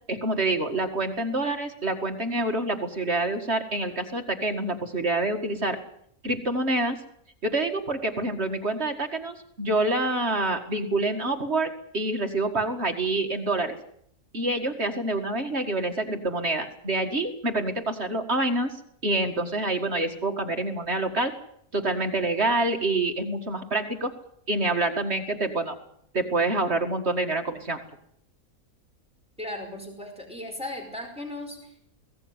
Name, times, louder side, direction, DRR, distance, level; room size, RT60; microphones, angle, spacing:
voice 1, 0.1-5.8 6.2-7.0 7.4-13.8 14.3-18.7 19.0-21.3 21.7-24.1 24.5-25.8 26.1-27.8, right 2 dB, 50° right, 4 dB, 2.3 m, -27 dB
voice 2, 29.4-31.8, left 1 dB, 5° right, 2 dB, 5.0 m, -37 dB
21.0 x 17.5 x 9.7 m, 0.70 s
omnidirectional pair, 1.5 m